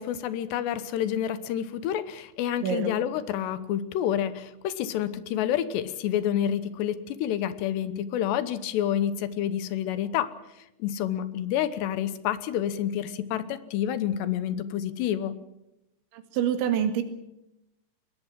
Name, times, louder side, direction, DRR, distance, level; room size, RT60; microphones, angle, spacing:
voice 1, 0.0-10.3 10.8-15.4, left 10 dB, 75° left, 14 dB, 3.0 m, -28 dB
voice 2, 2.6-2.9 16.1-17.0, right 9 dB, 85° right, 7 dB, 4.3 m, -26 dB
22.5 x 20.0 x 7.5 m, 0.88 s
omnidirectional pair, 5.2 m